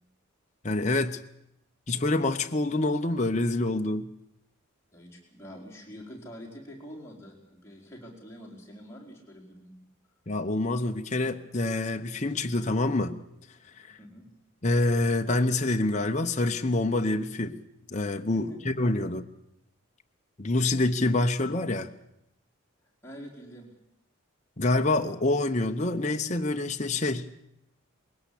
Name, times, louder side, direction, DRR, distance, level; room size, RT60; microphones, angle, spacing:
voice 1, 0.6-1.2 1.9-4.1 10.3-13.2 13.8-13.9 14.6-17.6 17.9-19.2 20.4-21.9 24.6-27.3, left 2 dB, 30° left, 4 dB, 0.9 m, -26 dB
voice 2, 4.9-9.7 14.0-14.3 18.3-18.4 19.0-19.1 23.0-23.7, equal, 10° left, -3 dB, 4.5 m, -46 dB
21.0 x 17.5 x 8.4 m, 0.80 s
head